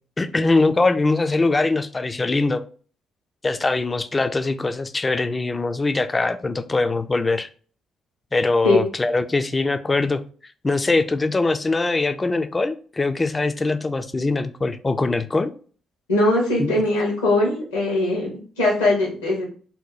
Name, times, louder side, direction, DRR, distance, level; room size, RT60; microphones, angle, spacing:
voice 1, 0.2-2.6 3.4-7.5 8.3-10.2 10.6-15.5 16.6-16.7, left 3 dB, 25° left, 11 dB, 0.3 m, -22 dB
voice 2, 16.1-19.5, left 2 dB, 85° left, -2 dB, 1.0 m, -20 dB
2.8 x 2.1 x 3.9 m, 0.42 s
hypercardioid pair, 45°, 0 cm